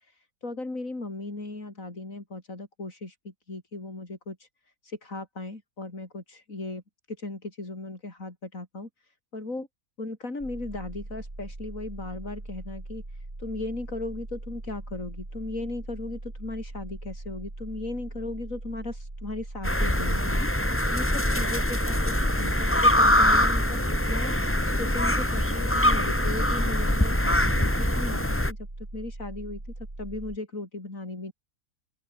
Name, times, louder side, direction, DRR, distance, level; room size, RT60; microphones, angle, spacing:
voice 1, 0.0-6.8 7.1-9.7 10.0-23.8 24.1-29.6 30.0-31.3, left 2 dB, 65° left, 5.3 m, -37 dB
sound 1, 10.4-30.4, right 2 dB, 35° right, 4.3 m, -40 dB
sound 2, 19.6-28.5, left 1 dB, 10° left, 2.5 m, -23 dB
open air
omnidirectional pair, 1.5 m